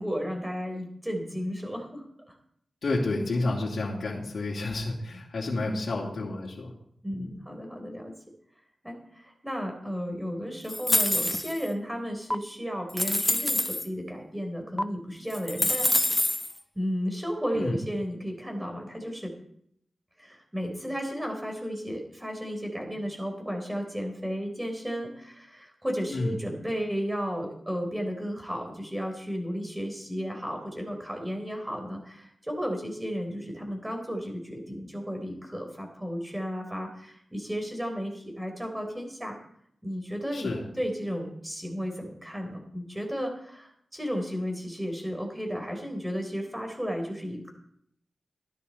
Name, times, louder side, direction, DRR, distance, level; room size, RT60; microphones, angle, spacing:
voice 1, 0.0-2.4 7.0-8.1 8.8-15.9 16.8-19.4 20.2-39.4 39.8-47.5, equal, 5° right, 3 dB, 4.0 m, -34 dB
voice 2, 2.8-6.7 7.1-7.4 17.5-17.8 26.1-26.3 40.3-40.6, left 2 dB, 65° left, -5 dB, 2.7 m, -30 dB
sound 1, 10.7-11.7 12.3-12.4 12.9-13.9 14.8-14.9 15.3-16.5, left 1 dB, 10° left, 0.6 m, -26 dB
15.0 x 12.0 x 4.2 m, 0.68 s
wide cardioid pair, 105°, 0 cm